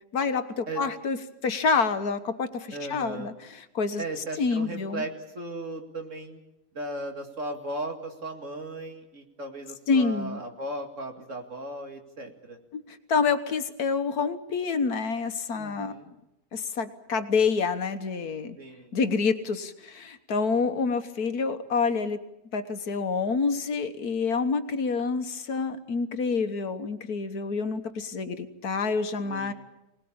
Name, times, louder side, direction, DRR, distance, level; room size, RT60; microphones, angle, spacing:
voice 1, 0.1-1.2 1.4-3.3 3.8-4.0 4.4-5.0 9.9-10.4 12.7-16.1 16.5-18.6 18.9-22.2 22.5-29.5, left 4 dB, 75° left, 9 dB, 1.8 m, -27 dB
voice 2, 2.7-3.3 4.0-6.4 6.7-12.6 15.5-16.1 18.6-18.9 29.3-29.5, right 2 dB, 55° right, 4 dB, 2.6 m, -36 dB
24.5 x 19.0 x 8.7 m, 0.91 s
omnidirectional pair, 1.6 m